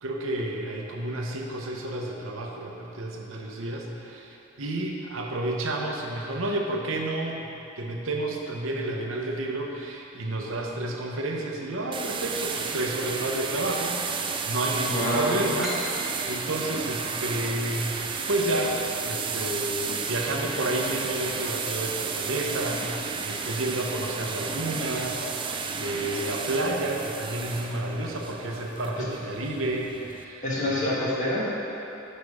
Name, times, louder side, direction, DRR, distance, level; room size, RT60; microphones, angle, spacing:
voice 1, 0.0-7.5 7.8-18.8 19.0-30.9, right 1 dB, 75° right, 0 dB, 0.8 m, -31 dB
sound 1, 11.9-30.2, right 5 dB, 25° right, 0.3 m, -32 dB
voice 2, 14.9-15.3 29.0-29.1 30.4-31.6, left 1 dB, 40° left, -6 dB, 1.5 m, -27 dB
sound 2, 15.6-19.0, equal, 5° right, 1.1 m, -39 dB
6.5 x 5.4 x 4.9 m, 3.0 s
head